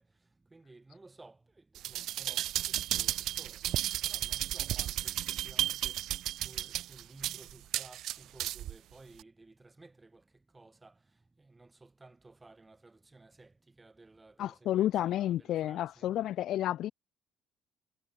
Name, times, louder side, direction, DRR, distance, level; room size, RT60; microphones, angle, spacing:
voice 1, 0.0-16.2, right 3 dB, 15° right, 3.6 m, -57 dB
sound 1, 1.8-8.8 9.2-9.3, right 13 dB, 65° right, 0.5 m, -34 dB
voice 2, 14.4-16.9, left 12 dB, 65° left, 0.4 m, -31 dB
cardioid pair, 105°, 0 cm